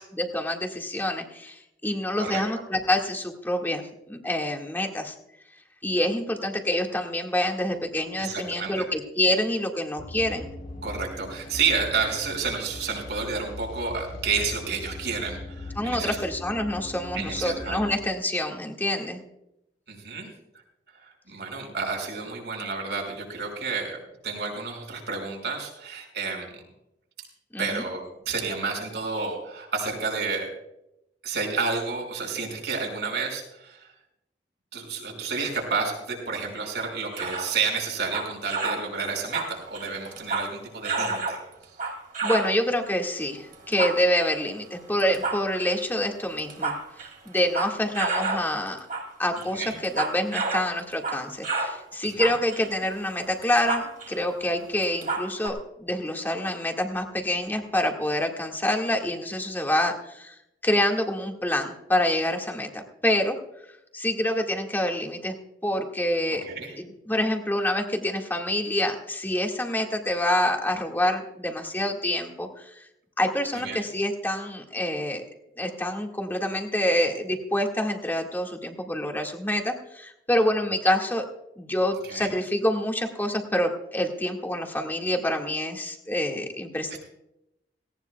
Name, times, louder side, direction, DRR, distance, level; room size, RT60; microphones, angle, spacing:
voice 1, 0.1-3.8 4.1-5.1 5.8-10.5 15.8-19.2 27.5-27.8 42.2-46.8 47.3-48.8 49.2-60.4 60.6-63.4 63.9-65.3 65.6-66.4 66.8-72.9 73.2-75.2 75.6-81.3 81.6-87.0, left 1 dB, 10° left, 2 dB, 1.8 m, -27 dB
voice 2, 8.2-8.9 10.8-16.2 17.1-17.8 19.9-20.3 20.9-26.6 27.2-27.3 27.6-30.5 31.2-33.9 34.7-41.4 49.5-49.8 52.0-52.2 66.4-66.7 73.5-73.8 82.0-82.3 86.9-87.0, right 4 dB, 70° right, 0 dB, 5.3 m, -30 dB
sound 1, 10.0-17.9, left 2 dB, 50° left, 2.2 m, -40 dB
sound 2, 36.8-37.5 38.0-38.9 39.2-40.6 40.8-42.6 43.5-44.4 45.0-45.8 46.3-48.5 48.8-49.1 49.4-51.8 52.1-54.2 54.4-54.5 54.8-55.5, right 3 dB, 50° right, 2.5 m, -30 dB
18.0 x 18.0 x 2.3 m, 0.84 s
head